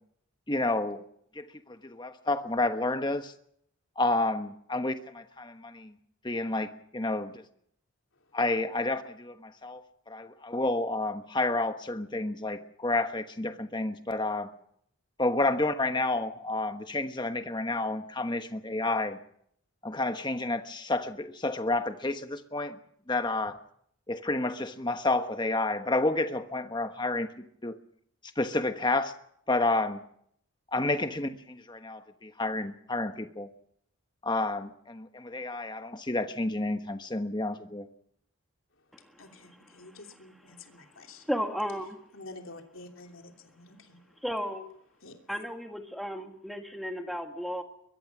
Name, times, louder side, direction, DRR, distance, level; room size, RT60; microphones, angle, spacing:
voice 1, 0.5-1.0 1.3-3.3 4.0-5.9 6.2-7.4 8.3-14.5 15.2-19.2 19.8-22.8 23.1-23.6 24.1-27.3 27.6-27.8 28.4-29.1 29.5-30.0 30.7-33.5 34.2-37.9, left 2 dB, 20° left, 8 dB, 1.2 m, -30 dB
voice 2, 39.2-41.3 42.1-44.0 45.0-45.2, left 2 dB, 70° left, 3 dB, 3.0 m, -49 dB
voice 3, 41.3-42.0 44.2-44.6 45.3-47.6, equal, ahead, 4 dB, 1.8 m, -33 dB
23.0 x 22.5 x 6.1 m, 0.71 s
head